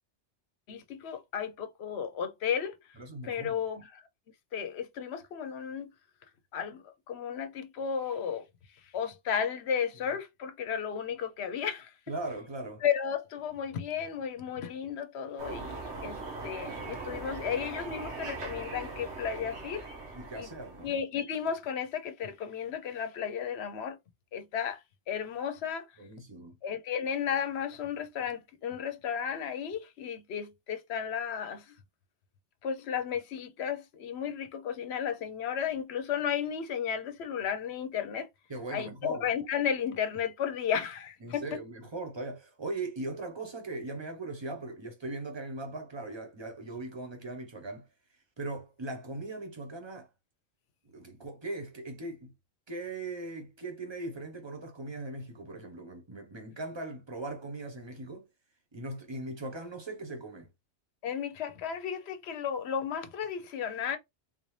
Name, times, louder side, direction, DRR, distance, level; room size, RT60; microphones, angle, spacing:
voice 1, 0.7-2.8 3.2-4.1 4.5-5.9 6.5-8.4 8.8-11.9 12.8-19.9 20.3-20.5 20.8-24.0 24.3-25.9 26.6-31.8 32.6-38.3 38.7-41.6 61.0-64.0, left 8 dB, 70° left, 0.9 m, -34 dB
voice 2, 3.0-3.6 12.1-12.8 20.1-21.0 26.0-26.6 38.5-39.3 41.2-47.9 48.4-50.1 50.9-52.3 52.7-58.3 58.7-60.5, right 2 dB, 25° right, 1.0 m, -39 dB
sound 1, 15.4-21.0, right 3 dB, 70° right, 1.5 m, -40 dB
3.7 x 2.6 x 3.2 m
omnidirectional pair, 1.2 m